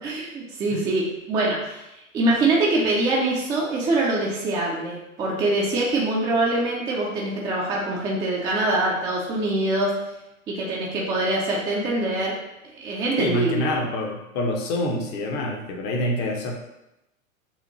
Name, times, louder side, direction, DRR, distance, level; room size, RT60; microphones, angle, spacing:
voice 1, 0.0-1.8 2.1-9.9 10.5-12.3 12.8-13.7, right 2 dB, 10° right, -4 dB, 0.5 m, -24 dB
voice 2, 13.2-16.5, left 1 dB, 25° left, 2 dB, 0.7 m, -26 dB
7.0 x 2.5 x 3.0 m, 0.92 s
figure-of-eight pair, 105°, 43 cm